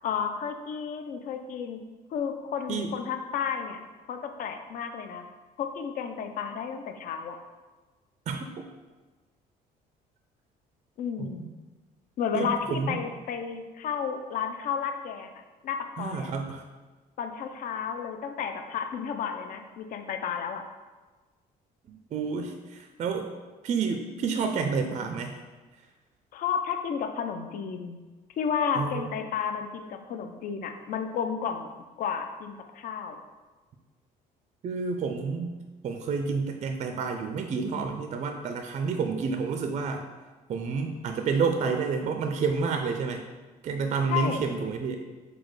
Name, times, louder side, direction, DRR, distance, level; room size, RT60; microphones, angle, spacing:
voice 1, 0.0-1.8 2.1-3.8 4.1-5.2 5.6-7.4 11.0-11.5 12.2-15.3 15.6-16.3 17.2-20.6 26.3-28.0 28.4-31.7 32.0-33.2 44.1-44.4, left 7 dB, 55° left, 6 dB, 0.4 m, -32 dB
voice 2, 8.3-8.6 11.2-11.5 12.3-13.0 16.0-16.6 21.9-23.3 23.6-25.4 28.8-29.1 34.6-35.6 35.8-40.0 40.5-43.2 43.6-45.0, right 5 dB, 40° right, 4 dB, 0.4 m, -29 dB
4.0 x 2.3 x 4.6 m, 1.3 s
cardioid pair, 110°, 17 cm